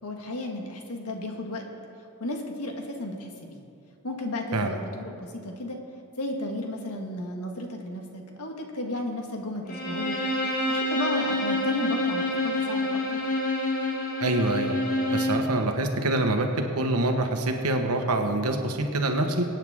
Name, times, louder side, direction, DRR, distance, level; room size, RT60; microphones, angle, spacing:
voice 1, 0.0-1.7 2.2-3.6 4.0-5.8 6.2-10.2 10.7-13.2, left 1 dB, 85° left, 2 dB, 1.6 m, -34 dB
Bowed string instrument, 9.7-15.5, left 1 dB, 40° left, 1.9 m, -27 dB
voice 2, 14.2-14.8 15.1-19.4, right 2 dB, 85° right, 4 dB, 1.3 m, -25 dB
23.0 x 9.2 x 3.7 m, 2.5 s
head